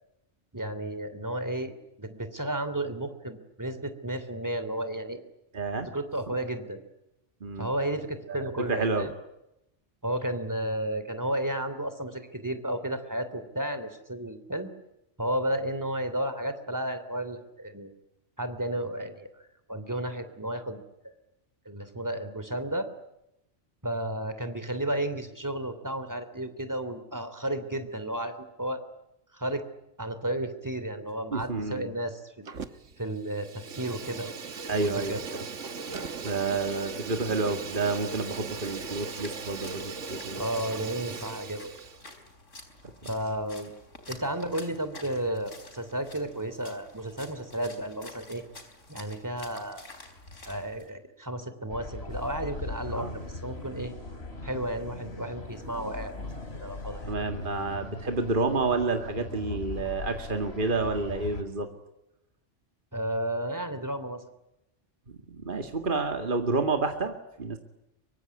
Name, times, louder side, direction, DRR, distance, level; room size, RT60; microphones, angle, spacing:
voice 1, 0.5-5.2 5.9-6.8 7.6-9.1 10.0-14.7 15.2-17.9 18.4-21.1 21.6-22.9 23.8-28.8 29.3-29.6 30.0-32.5 33.0-34.4 34.8-35.2 40.4-41.7 43.1-43.7 44.1-48.4 48.9-49.8 50.4-53.9 54.4-56.3 56.6-57.0 62.9-64.2, right 1 dB, 15° right, 11 dB, 3.0 m, -33 dB
voice 2, 5.5-5.9 7.4-7.7 8.3-9.1 31.3-31.9 34.7-35.4 36.2-40.4 43.0-43.1 53.0-53.1 57.0-61.7 65.1-67.6, right 3 dB, 45° right, 5 dB, 2.3 m, -29 dB
Fire, 32.5-33.0 33.3-42.0, right 4 dB, 80° right, 1.8 m, -38 dB
Splash splatter, 38.2-50.9, left 2 dB, 90° left, 4.6 m, -50 dB
sound 1, 51.7-61.4, left 2 dB, 60° left, 3.4 m, -39 dB
24.0 x 23.5 x 9.6 m, 0.87 s
omnidirectional pair, 1.2 m